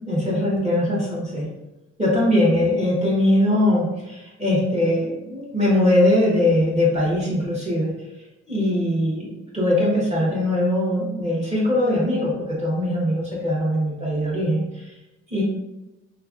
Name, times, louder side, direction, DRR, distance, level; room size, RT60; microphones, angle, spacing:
voice 1, 0.1-1.5 2.0-7.9 8.5-14.9 15.3-15.4, left 1 dB, 20° right, -6 dB, 1.2 m, -21 dB
3.2 x 2.3 x 2.5 m, 0.97 s
cardioid pair, 90°, 30 cm